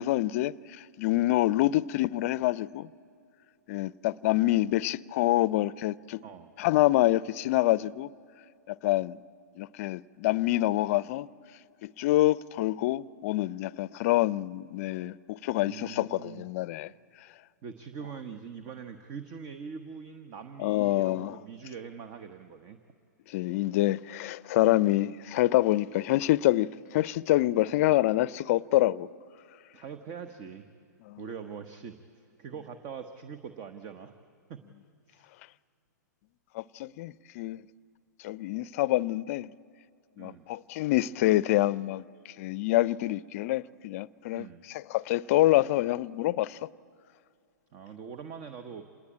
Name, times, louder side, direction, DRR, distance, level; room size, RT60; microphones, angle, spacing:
voice 1, 0.0-2.9 3.7-6.2 6.6-8.1 8.7-9.2 9.6-11.3 11.8-16.9 20.6-21.4 23.3-29.1 31.1-31.2 36.5-37.6 38.2-39.5 40.2-42.0 42.4-46.7, left 16 dB, 50° left, 0.5 m, -26 dB
voice 2, 15.6-16.5 17.6-22.8 27.6-27.8 29.7-30.6 31.2-34.1 34.5-34.6 35.1-35.3 40.2-40.4 44.3-44.6 47.7-48.8, right 6 dB, 35° right, 1.2 m, -43 dB
26.5 x 20.0 x 8.7 m
hypercardioid pair, 120°, 10 cm